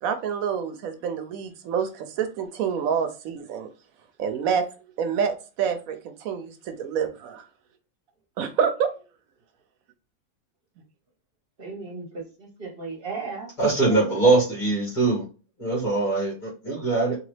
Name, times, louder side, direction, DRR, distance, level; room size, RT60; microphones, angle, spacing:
voice 1, 0.0-3.7 4.2-4.7 5.0-7.5 8.4-8.9 13.6-13.7, right 7 dB, 80° right, 9 dB, 1.0 m, -27 dB
voice 2, 11.6-13.5 13.9-14.1, right 4 dB, 45° right, 0 dB, 1.1 m, -36 dB
voice 3, 13.6-15.2 15.6-17.2, right 3 dB, 35° left, -3 dB, 1.9 m, -22 dB
3.9 x 2.8 x 3.2 m, 0.34 s
omnidirectional pair, 1.5 m